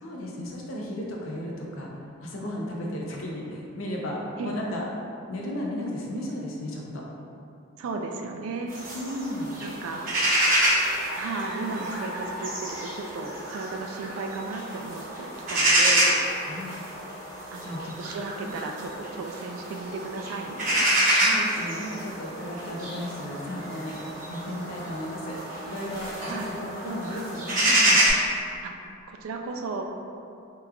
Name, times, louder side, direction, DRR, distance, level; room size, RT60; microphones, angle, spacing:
voice 1, 0.0-4.9 5.3-7.0 8.9-9.5 16.4-16.7 17.6-17.9 18.4-18.5 21.1-25.4 25.6-28.0, left 1 dB, 75° left, -2 dB, 0.6 m, -34 dB
voice 2, 7.8-8.7 9.6-10.3 11.1-16.2 17.5-20.9 26.3-26.5 28.6-29.8, right 3 dB, 90° right, 3 dB, 0.3 m, -35 dB
sound 1, 8.7-28.1, right 1 dB, 40° right, 0.8 m, -27 dB
2.9 x 2.3 x 3.4 m, 2.6 s
head